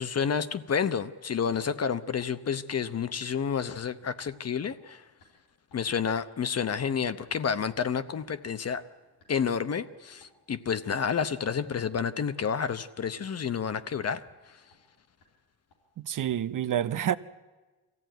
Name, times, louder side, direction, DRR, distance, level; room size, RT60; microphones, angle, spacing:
voice 1, 0.0-5.0 5.7-8.8 9.3-14.2, left 7 dB, 40° left, 0.9 m, -30 dB
sound 1, 2.2-2.3 2.7-2.8 3.2-3.3 3.7-3.9 4.2-4.3 4.7-4.8 5.2-5.3 5.7-5.8 6.2-6.3 6.7-6.8 7.2-7.4 7.7-7.8 8.2-8.3 8.7-8.8 9.2-9.3 9.7-9.8 10.2-10.3 10.7-10.9 11.2-11.3 11.7-11.8 12.2-12.3 12.7-12.8 13.2-13.3 13.7-13.9 14.2-14.3 14.7-14.8 15.2-15.3 15.7-15.8, left 4 dB, 85° left, 4.4 m, -57 dB
voice 2, 16.0-17.2, right 10 dB, 55° right, 0.7 m, -28 dB
23.5 x 15.0 x 9.2 m
cardioid pair, 100°, 39 cm